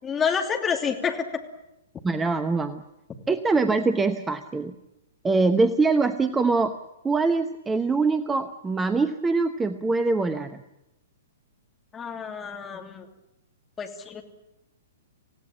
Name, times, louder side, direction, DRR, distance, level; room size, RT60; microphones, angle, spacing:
voice 1, 0.0-1.4 11.9-13.1 13.8-14.2, left 6 dB, 15° left, 2 dB, 2.8 m, -28 dB
voice 2, 2.0-2.8 3.3-4.7 5.2-6.8 7.0-10.6, right 3 dB, 10° right, 11 dB, 0.9 m, -23 dB
27.0 x 17.0 x 9.0 m, 0.92 s
figure-of-eight pair, 110°, 0 cm